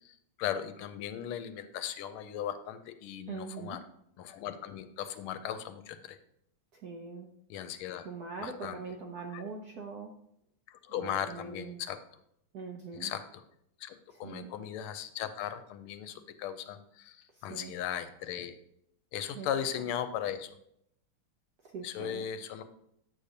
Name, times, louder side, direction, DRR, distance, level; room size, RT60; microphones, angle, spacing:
voice 1, 0.4-3.8 4.2-6.2 7.5-8.1 8.4-8.8 9.3-9.4 10.7-12.0 13.0-13.2 13.8-18.6 19.1-20.5 21.8-22.6, left 9 dB, 90° left, 10 dB, 1.5 m, -37 dB
voice 2, 3.3-3.8 6.7-7.3 8.0-10.1 11.0-11.8 12.5-13.1 14.1-14.5 17.5-17.7 19.3-19.5 21.7-22.3, right 5 dB, 65° right, 1 dB, 0.9 m, -42 dB
8.6 x 6.6 x 2.7 m, 0.74 s
omnidirectional pair, 2.3 m